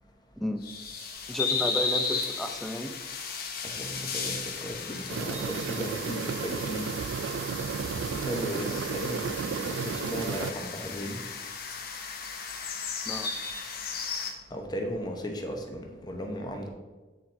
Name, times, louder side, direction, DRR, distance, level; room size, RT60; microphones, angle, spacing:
sound 1, 0.6-14.3, left 5 dB, 55° left, 1.0 m, -35 dB
voice 1, 1.3-2.9 13.1-13.3, equal, ahead, 6 dB, 0.5 m, -32 dB
voice 2, 3.6-6.9 8.0-9.3 9.7-11.2 14.5-16.7, equal, 25° left, 2 dB, 1.0 m, -36 dB
sound 2, 5.1-10.5, right 6 dB, 75° right, 0.3 m, -33 dB
8.7 x 4.3 x 4.2 m, 1.3 s
head